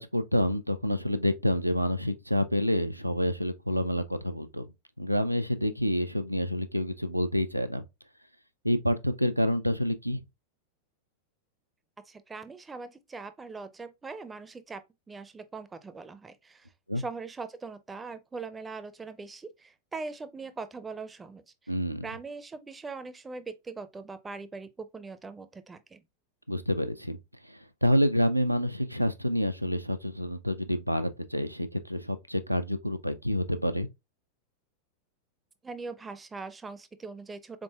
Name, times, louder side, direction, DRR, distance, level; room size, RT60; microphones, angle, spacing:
voice 1, 0.0-4.6 5.0-7.8 8.6-10.2 16.9-17.0 21.7-22.0 26.5-27.2 27.5-33.9, equal, 90° right, 0.4 m, -28 dB
voice 2, 12.1-14.8 15.1-16.7 17.0-21.4 22.0-26.0 35.6-37.6, right 4 dB, 15° right, 0.5 m, -41 dB
3.9 x 3.7 x 2.2 m
figure-of-eight pair, 90°, 0 cm